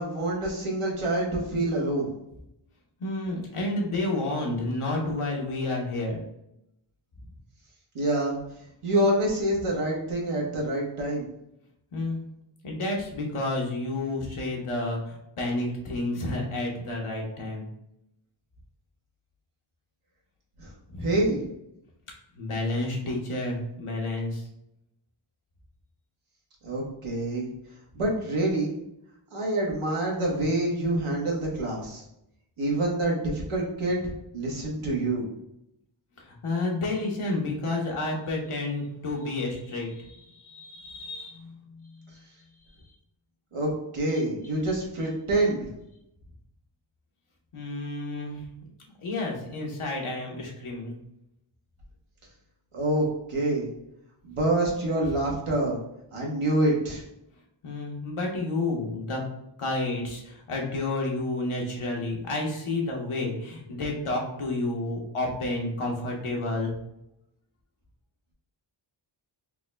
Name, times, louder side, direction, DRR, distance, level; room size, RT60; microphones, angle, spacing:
voice 1, 0.0-2.1 7.9-8.4 8.8-11.3 20.6-20.7 21.0-21.4 26.6-27.5 27.9-28.7 29.3-32.0 32.6-34.0 34.3-35.2 43.5-45.7 52.7-53.7 54.2-55.8 56.1-57.0, right 1 dB, 90° right, -2 dB, 1.0 m, -26 dB
voice 2, 3.0-6.2 11.9-12.2 12.6-17.6 20.9-21.2 22.3-24.4 36.2-42.0 47.5-48.4 49.0-50.9 57.6-59.2 59.6-66.7, left 2 dB, 80° left, -1 dB, 1.0 m, -30 dB
3.5 x 2.1 x 3.2 m, 0.82 s
cardioid pair, 40°, 49 cm